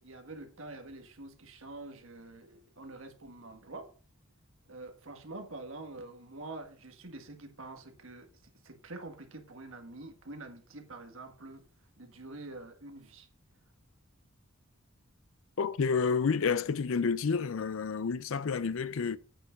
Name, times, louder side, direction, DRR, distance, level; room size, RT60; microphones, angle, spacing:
voice 1, 0.0-3.9 4.7-8.3 8.6-11.6 12.0-13.3, right 2 dB, 65° right, 1.8 m, -46 dB
voice 2, 15.6-19.2, left 5 dB, 65° left, 0.5 m, -29 dB
8.7 x 7.0 x 5.2 m
head